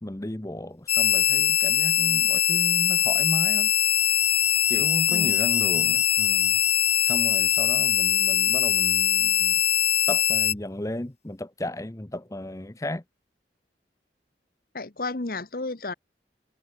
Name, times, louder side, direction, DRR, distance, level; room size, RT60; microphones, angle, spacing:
voice 1, 0.0-3.7 4.7-6.6 7.0-9.6 10.1-13.0, left 1 dB, 20° left, 0.8 m, -34 dB
sound 1, 0.9-10.5, left 10 dB, 35° left, 1.5 m, -22 dB
voice 2, 5.1-5.4 14.7-15.9, left 3 dB, 55° left, 1.1 m, -32 dB
head